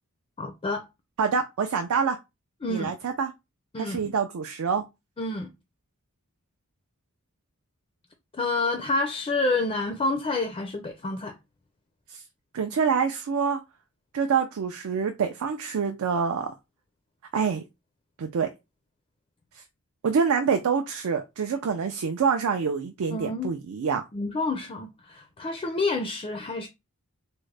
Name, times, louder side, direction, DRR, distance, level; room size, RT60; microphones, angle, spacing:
voice 1, 0.4-0.9 2.6-3.0 3.7-4.1 5.2-5.5 8.4-11.3 23.1-23.5 24.1-26.7, left 2 dB, 25° left, 0.4 m, -28 dB
voice 2, 1.2-2.2 2.7-3.3 3.8-4.8 12.1-12.2 12.5-13.6 14.1-16.5 17.3-17.6 18.2-18.5 19.5-19.6 20.0-24.0, right 6 dB, 65° right, 0.4 m, -26 dB
3.6 x 2.1 x 3.2 m
head